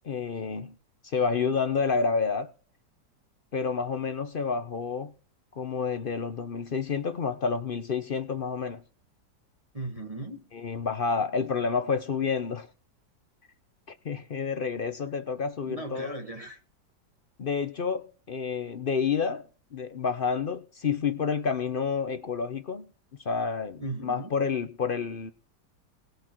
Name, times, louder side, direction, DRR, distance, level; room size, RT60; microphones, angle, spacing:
voice 1, 0.0-0.7 1.0-2.5 3.5-5.1 5.6-8.8 10.5-12.7 13.9-16.2 17.4-22.9 23.2-25.3, left 5 dB, 60° left, 0.5 m, -29 dB
voice 2, 9.7-10.5 15.6-16.6 23.8-24.4, right 2 dB, 20° right, 1.6 m, -37 dB
18.5 x 6.6 x 4.5 m
omnidirectional pair, 2.0 m